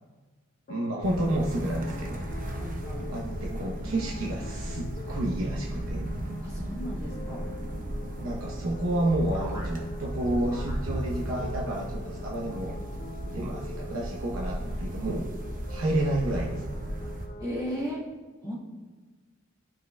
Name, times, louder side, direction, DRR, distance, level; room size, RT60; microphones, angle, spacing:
sound 1, 0.7-17.8, left 2 dB, 45° left, 0.5 m, -45 dB
voice 1, 0.7-2.2 3.0-6.1 8.2-12.8 13.3-15.3 15.7-16.8, right 1 dB, 80° right, -2 dB, 0.8 m, -30 dB
sound 2, 1.0-17.3, right 1 dB, 40° right, 0.8 m, -35 dB
voice 2, 2.6-3.1 6.4-7.5 9.3-9.7 10.5-10.8 17.4-18.0 18.4-18.5, equal, 20° right, -7 dB, 1.9 m, -36 dB
11.5 x 5.8 x 2.2 m, 1.3 s
head